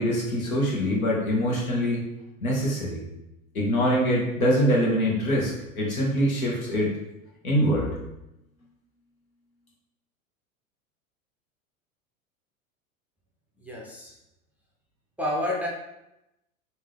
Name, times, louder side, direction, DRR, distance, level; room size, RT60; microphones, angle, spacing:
voice 1, 0.0-2.0 2.4-3.0 3.5-6.9 7.4-7.9, equal, 80° left, -3 dB, 1.4 m, -24 dB
voice 2, 13.6-14.1 15.2-15.7, left 1 dB, 5° right, -4 dB, 0.4 m, -29 dB
3.4 x 2.7 x 3.4 m, 0.90 s
hypercardioid pair, 90°, 41 cm